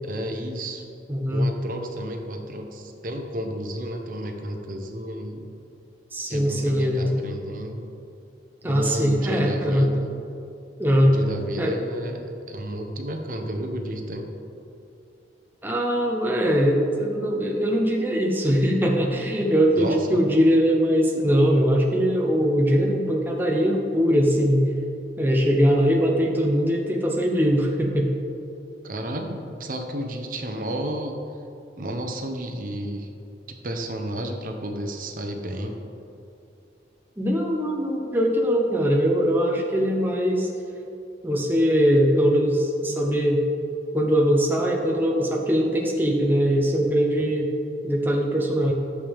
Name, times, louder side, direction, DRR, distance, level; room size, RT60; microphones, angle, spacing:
voice 1, 0.0-0.9 1.3-5.5 6.3-7.9 8.6-10.1 11.0-14.3 19.8-20.2 28.8-31.1 31.8-33.1 33.6-35.8, right 1 dB, 50° right, 4 dB, 0.8 m, -32 dB
voice 2, 1.1-1.5 6.1-7.2 8.6-9.9 10.8-11.2 11.6-11.8 15.6-24.7 25.2-28.1 37.2-40.5 41.2-43.4 43.9-47.5 47.8-48.7, equal, 10° right, -1 dB, 0.7 m, -21 dB
12.0 x 7.2 x 3.5 m, 2.7 s
head